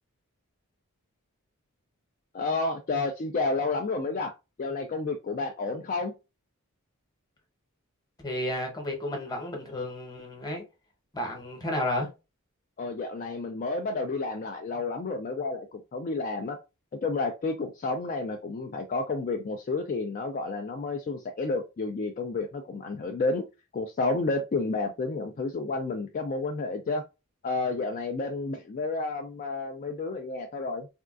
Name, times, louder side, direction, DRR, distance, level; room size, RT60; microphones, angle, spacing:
voice 1, 2.3-4.3 4.6-6.1 12.8-16.6 17.0-23.4 23.7-27.0 27.4-30.9, left 3 dB, 35° left, 0.3 m, -30 dB
voice 2, 8.2-10.6 11.1-12.1, left 1 dB, 15° left, 0.9 m, -32 dB
3.5 x 2.3 x 2.4 m
head